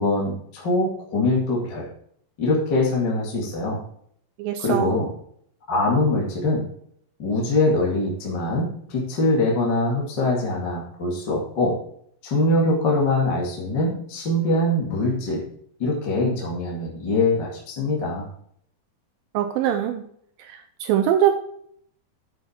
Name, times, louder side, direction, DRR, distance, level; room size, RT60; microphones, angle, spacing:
voice 1, 0.0-1.9 2.4-3.8 4.6-5.1 5.7-6.7 7.2-11.8 12.2-15.4 15.8-18.3, left 2 dB, 35° left, -2 dB, 2.1 m, -23 dB
voice 2, 4.4-4.9 19.3-20.0 20.4-21.3, right 10 dB, 85° right, 8 dB, 2.0 m, -22 dB
9.4 x 7.1 x 4.4 m, 0.65 s
omnidirectional pair, 4.8 m